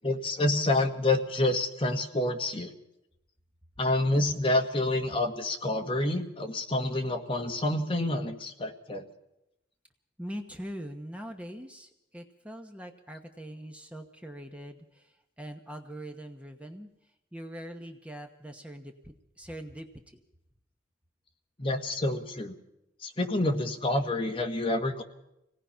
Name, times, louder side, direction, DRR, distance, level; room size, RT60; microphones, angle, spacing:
voice 1, 0.0-2.7 3.8-9.0 21.6-22.5 23.0-25.0, left 2 dB, 30° left, 4 dB, 1.6 m, -28 dB
voice 2, 10.2-16.9 17.3-20.2, equal, 5° right, 4 dB, 1.1 m, -42 dB
26.0 x 18.0 x 5.7 m, 0.87 s
head